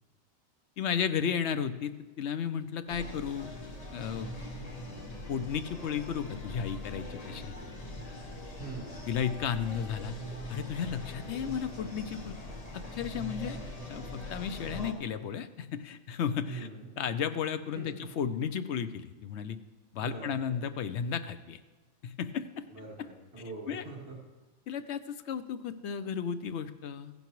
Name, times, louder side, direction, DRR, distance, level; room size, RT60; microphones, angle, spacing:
voice 1, 0.8-3.5 3.9-4.4 5.3-7.5 9.1-10.2 10.5-12.3 12.7-13.6 13.9-16.7 17.0-19.6 19.9-21.6 22.0-22.7 23.0-23.1 23.7-23.8 24.7-27.1, left 7 dB, 65° left, 11 dB, 0.8 m, -34 dB
sound 1, 2.9-14.9, left 1 dB, 30° left, 1.3 m, -42 dB
voice 2, 8.6-9.0 11.5-11.6 16.5-16.9 17.7-18.1 20.0-20.6 22.7-24.2, right 3 dB, 50° right, -4 dB, 2.2 m, -43 dB
15.5 x 10.5 x 3.1 m, 1.3 s
omnidirectional pair, 1.4 m